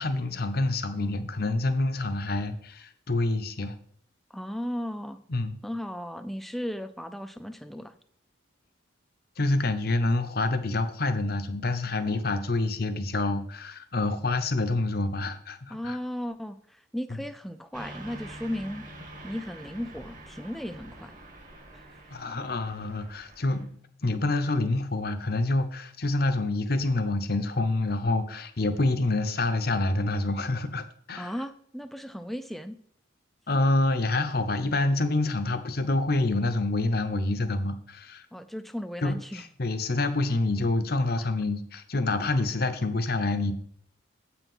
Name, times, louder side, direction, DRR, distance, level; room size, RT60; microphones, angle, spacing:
voice 1, 0.0-3.7 5.3-5.6 9.4-16.0 17.1-17.2 22.1-23.7 24.0-31.3 33.5-38.3 39.0-43.5, left 2 dB, 50° left, 9 dB, 0.8 m, -27 dB
voice 2, 4.3-5.2 5.6-7.9 15.7-18.9 19.2-21.2 21.7-21.9 31.2-32.8 38.3-39.4, equal, ahead, 10 dB, 0.4 m, -36 dB
Car passing by / Truck, 17.7-23.6, right 1 dB, 40° right, 1.5 m, -46 dB
8.1 x 5.8 x 5.5 m, 0.62 s
head